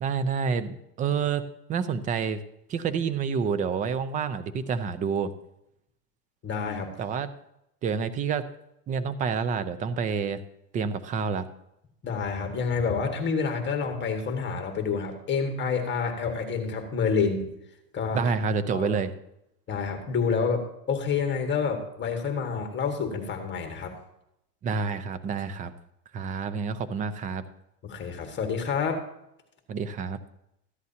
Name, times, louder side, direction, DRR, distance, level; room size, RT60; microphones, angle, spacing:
voice 1, 0.0-2.4 2.7-5.3 7.0-7.3 7.8-8.4 8.9-10.4 10.7-11.5 18.1-19.1 24.6-25.7 26.1-27.4 29.7-30.2, right 6 dB, 15° right, 12 dB, 0.5 m, -28 dB
voice 2, 6.4-6.9 12.0-17.5 17.9-18.2 18.7-18.9 19.7-24.0 27.8-29.0, left 5 dB, 20° left, 4 dB, 1.7 m, -28 dB
14.5 x 10.5 x 2.8 m, 0.81 s
supercardioid pair, 135°, 49 cm